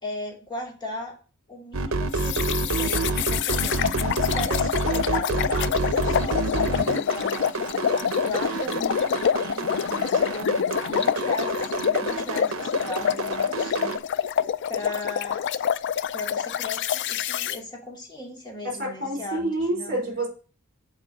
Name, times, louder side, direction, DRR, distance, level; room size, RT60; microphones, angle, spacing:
voice 1, 0.0-1.1 1.5-7.8 8.2-14.3 14.7-15.4 16.1-20.0, left 2 dB, 20° left, -2 dB, 2.7 m, -37 dB
sound 1, 1.7-14.0, right 3 dB, 70° right, 0.7 m, -28 dB
sound 2, 2.2-17.6, left 8 dB, 55° left, 0.4 m, -26 dB
voice 2, 18.6-20.3, right 1 dB, 45° right, -1 dB, 4.4 m, -28 dB
7.3 x 4.6 x 6.2 m, 0.37 s
head